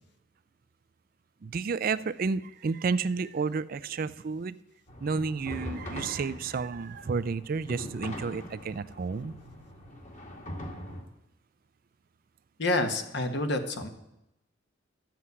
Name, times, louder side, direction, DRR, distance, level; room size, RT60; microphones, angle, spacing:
voice 1, 1.4-4.6 5.0-9.3, right 4 dB, 45° right, 16 dB, 0.4 m, -31 dB
sound 1, 4.9-11.0, left 1 dB, 40° left, 2.0 m, -42 dB
voice 2, 12.6-13.9, left 2 dB, 60° left, 6 dB, 1.5 m, -28 dB
12.5 x 7.7 x 8.3 m, 0.88 s
head